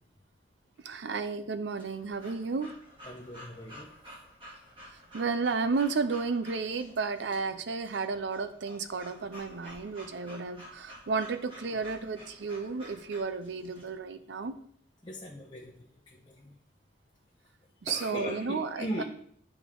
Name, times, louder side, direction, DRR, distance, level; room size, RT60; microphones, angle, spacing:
voice 1, 0.8-2.7 5.1-14.5 17.8-18.7 19.0-19.1, right 4 dB, 70° right, 11 dB, 0.5 m, -32 dB
Breathing / Dog, 1.8-13.9, equal, 30° right, 2.4 m, -51 dB
voice 2, 3.0-3.9 15.0-16.5 17.9-19.0, equal, 25° left, -1 dB, 0.8 m, -39 dB
10.5 x 5.0 x 3.7 m, 0.64 s
head